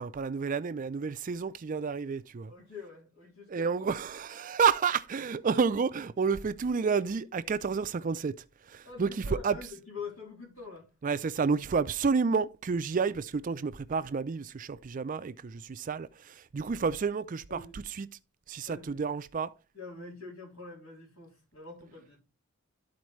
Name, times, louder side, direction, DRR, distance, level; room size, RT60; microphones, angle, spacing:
voice 1, 0.0-2.5 3.5-9.6 11.0-18.1 18.5-19.5, right 5 dB, 40° right, 0.4 m, -30 dB
voice 2, 2.5-3.7 8.8-10.9 17.5-17.8 18.7-19.0 19.7-22.2, left 4 dB, 80° left, 3.4 m, -45 dB
13.0 x 4.3 x 3.1 m
head